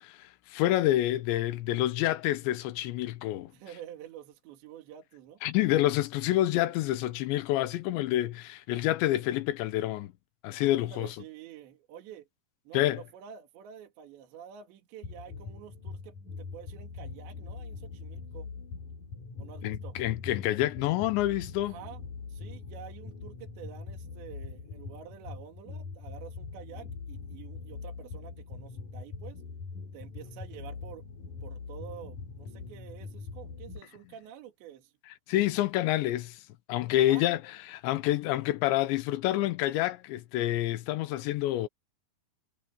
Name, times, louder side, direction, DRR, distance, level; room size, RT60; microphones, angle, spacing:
voice 1, 0.0-3.5 5.4-10.1 10.4-11.1 12.7-13.0 19.6-21.7 35.3-36.4 36.7-37.4 37.7-41.7, left 14 dB, 75° left, 3.1 m, -28 dB
voice 2, 3.5-5.4 10.6-12.3 12.7-18.5 19.4-20.0 21.6-29.4 29.9-31.0 31.4-34.9 37.0-37.3, right 9 dB, 70° right, 4.4 m, -48 dB
sound 1, 15.0-33.8, left 4 dB, 45° left, 4.0 m, -42 dB
omnidirectional pair, 5.4 m